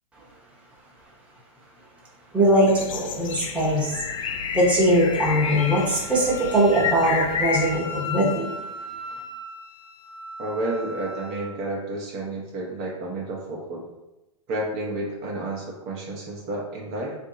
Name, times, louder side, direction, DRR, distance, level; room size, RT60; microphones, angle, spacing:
voice 1, 2.3-4.0 4.5-8.6, right 1 dB, 5° right, -5 dB, 0.9 m, -21 dB
sound 1, 2.7-7.8, left 6 dB, 75° left, 0.4 m, -30 dB
Wind instrument woodwind instrument, 3.3-11.5, left 3 dB, 45° left, 0.8 m, -38 dB
voice 2, 10.4-13.8 14.5-17.1, right 2 dB, 40° right, -3 dB, 0.8 m, -31 dB
2.8 x 2.6 x 3.7 m, 0.99 s
hypercardioid pair, 125°, 17 cm